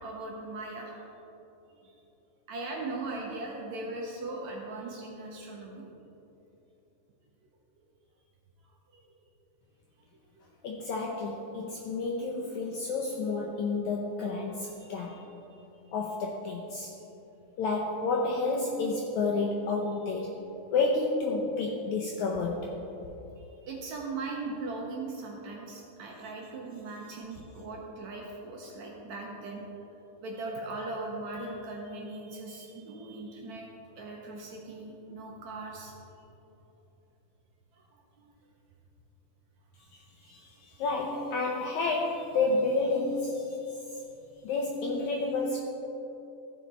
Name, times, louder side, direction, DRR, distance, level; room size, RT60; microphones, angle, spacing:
voice 1, 0.0-1.0 1.8-2.0 2.5-5.9 8.9-9.0 10.4-10.5 14.8-15.2 23.6-29.6 30.2-33.7 34.0-36.1 37.7-37.8 38.2-38.3 40.2-40.4, right 2 dB, 70° right, -2 dB, 1.9 m, -39 dB
voice 2, 10.6-15.2 15.9-16.9 17.6-20.4 20.7-22.7 39.9-43.6 44.4-45.6, left 3 dB, 80° left, -1 dB, 1.7 m, -30 dB
14.5 x 5.7 x 4.2 m, 3.0 s
omnidirectional pair, 4.1 m